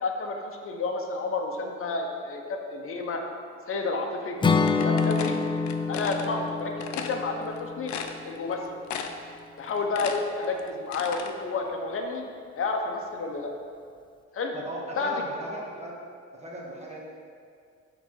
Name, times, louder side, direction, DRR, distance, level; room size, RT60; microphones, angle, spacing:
voice 1, 0.0-3.2 3.7-4.4 4.8-5.4 5.9-7.9 8.2-8.6 9.6-12.2 12.6-13.5 14.3-14.5 15.0-15.2, left 3 dB, 45° left, 2 dB, 0.9 m, -30 dB
Acoustic guitar / Strum, 4.4-8.5, left 4 dB, 15° left, 0.3 m, -27 dB
sound 1, 4.7-6.3 6.8-7.2 7.6-7.7 7.9-8.5 8.9-9.3 9.6-11.3, left 7 dB, 70° left, 0.6 m, -35 dB
voice 2, 14.5-15.9 16.3-17.0, right 1 dB, 20° right, -4 dB, 1.7 m, -37 dB
5.9 x 4.0 x 6.2 m, 2.2 s
cardioid pair, 90°, 30 cm